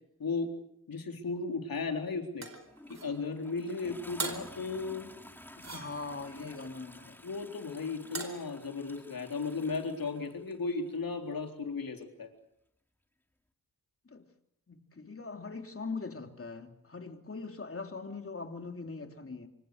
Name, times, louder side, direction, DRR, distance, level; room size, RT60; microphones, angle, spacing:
voice 1, 0.2-0.5 0.9-2.5 2.9-5.1 6.4-6.5 7.2-12.3, left 4 dB, 70° left, 4.0 m, -35 dB
sound 1, 2.4-3.2 4.2-4.6 5.6-6.3 8.1-8.5, right 4 dB, 50° right, 4.4 m, -40 dB
Toilet flush, 2.5-11.0 12.0-12.1, left 1 dB, 5° left, 2.7 m, -52 dB
voice 2, 5.6-7.3 14.0-14.3 14.7-19.5, left 4 dB, 40° left, 3.4 m, -41 dB
26.5 x 25.0 x 6.7 m
cardioid pair, 70°, 36 cm